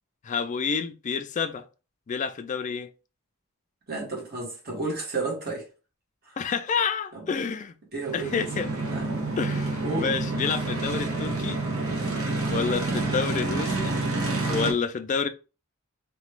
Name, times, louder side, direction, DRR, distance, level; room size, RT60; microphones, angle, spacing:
voice 1, 0.2-1.7 2.1-2.9 6.4-7.7 8.1-8.7 9.4-11.6 12.5-13.9 14.5-15.3, left 5 dB, 35° left, 0.3 m, -29 dB
voice 2, 3.9-5.7 7.1-7.4 7.9-8.5 8.9-9.1 9.8-10.1, right 3 dB, 45° right, 1.2 m, -32 dB
sound 1, 8.0-14.7, right 2 dB, 70° right, 0.8 m, -28 dB
2.9 x 2.2 x 3.2 m
head